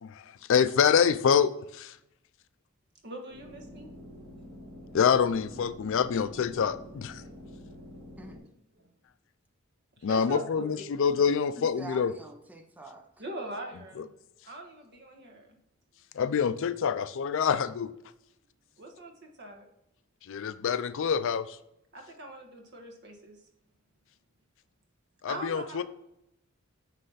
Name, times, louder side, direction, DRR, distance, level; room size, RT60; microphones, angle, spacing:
voice 1, 0.0-2.0 4.9-7.2 10.0-12.1 14.0-14.1 16.1-17.9 20.3-21.6 25.2-25.8, left 7 dB, 65° left, 13 dB, 0.4 m, -26 dB
voice 2, 3.0-3.9 7.2-7.8 8.2-8.4 8.8-8.9 10.1-10.6 13.2-14.1 14.4-15.5 18.8-19.7 21.9-23.4 25.3-25.8, right 2 dB, 55° right, 2 dB, 1.4 m, -42 dB
sound 1, 3.3-8.4, left 1 dB, 90° right, 2.6 m, -47 dB
voice 3, 11.8-13.1, right 3 dB, 10° right, 4 dB, 0.7 m, -46 dB
9.3 x 3.3 x 4.0 m, 0.81 s
head